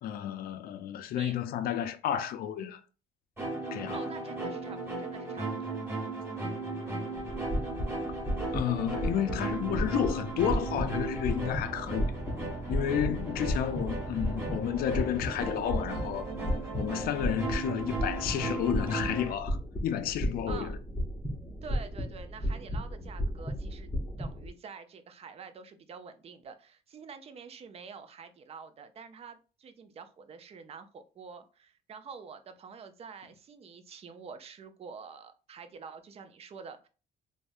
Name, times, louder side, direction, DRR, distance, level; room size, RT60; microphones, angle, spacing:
voice 1, 0.0-2.8 3.7-4.0 8.5-12.1 12.7-16.2 16.8-19.6 19.8-20.8, left 9 dB, 60° left, 0.4 m, -31 dB
sound 1, 3.4-19.3, right 3 dB, 15° right, 1.2 m, -36 dB
voice 2, 3.9-5.7 20.5-20.8 21.6-23.9 24.2-36.9, right 5 dB, 35° right, 0.5 m, -47 dB
sound 2, 7.2-24.5, equal, 15° left, 0.7 m, -35 dB
3.3 x 2.1 x 2.5 m
cardioid pair, 110°, 17 cm